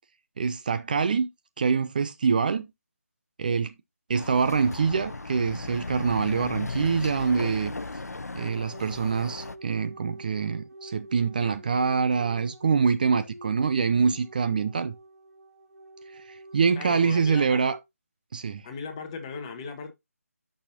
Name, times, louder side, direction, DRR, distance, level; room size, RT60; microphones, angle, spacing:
voice 1, 0.4-1.3 1.6-2.7 3.4-3.7 4.1-7.7 8.3-14.9 16.1-17.8 18.3-18.7, right 5 dB, 35° right, 0.5 m, -25 dB
Chatter / Car passing by / Motorcycle, 4.1-9.6, left 3 dB, 80° left, 0.7 m, -36 dB
sound 1, 8.3-17.8, right 1 dB, 75° right, 3.1 m, -48 dB
voice 2, 16.7-17.7 18.6-19.9, left 5 dB, 20° left, 1.3 m, -37 dB
9.7 x 6.3 x 2.7 m
figure-of-eight pair, 155°, 8 cm